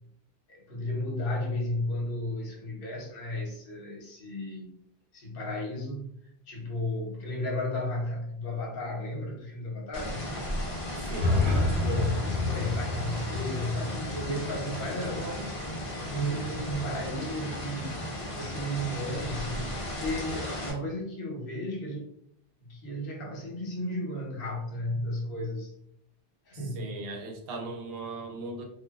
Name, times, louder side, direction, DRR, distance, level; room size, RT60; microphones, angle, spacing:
voice 1, 0.5-4.8 5.1-6.2 6.5-10.3 11.8-15.3 16.1-17.9 18.3-22.1 22.7-25.7 26.5-27.0, left 1 dB, 60° left, -1 dB, 0.9 m, -34 dB
sound 1, 9.9-20.7, equal, 40° left, 0.6 m, -35 dB
voice 2, 11.0-11.5 15.0-15.5 26.7-28.6, right 2 dB, 70° right, 2 dB, 0.8 m, -38 dB
sound 2, 11.1-15.1, left 2 dB, 35° right, 0.5 m, -29 dB
2.8 x 2.2 x 2.2 m, 0.73 s
omnidirectional pair, 1.1 m